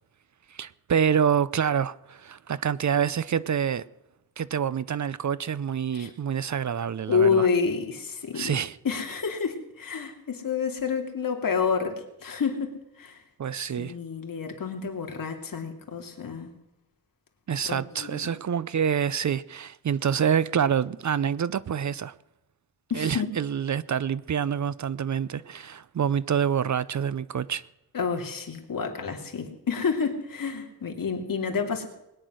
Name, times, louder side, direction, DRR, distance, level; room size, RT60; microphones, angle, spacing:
voice 1, 0.6-3.9 4.4-7.5 8.3-8.8 13.4-13.9 17.5-22.1 22.9-27.6, right 8 dB, 50° right, 0.5 m, -27 dB
voice 2, 7.1-8.6 8.8-13.2 13.8-16.5 17.6-18.3 22.9-23.3 27.9-31.9, left 5 dB, 60° left, 2.6 m, -29 dB
21.0 x 9.9 x 6.3 m
wide cardioid pair, 145°, 37 cm